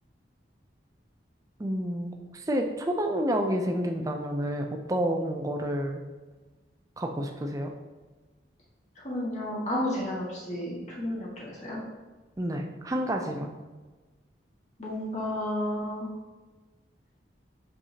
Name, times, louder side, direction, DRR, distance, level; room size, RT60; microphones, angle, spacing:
voice 1, 1.6-6.0 7.0-7.7 12.4-13.5, equal, 20° right, 3 dB, 0.4 m, -29 dB
voice 2, 9.0-11.8 14.8-16.1, left 1 dB, 40° left, -5 dB, 1.8 m, -32 dB
6.6 x 5.4 x 2.8 m, 1.3 s
head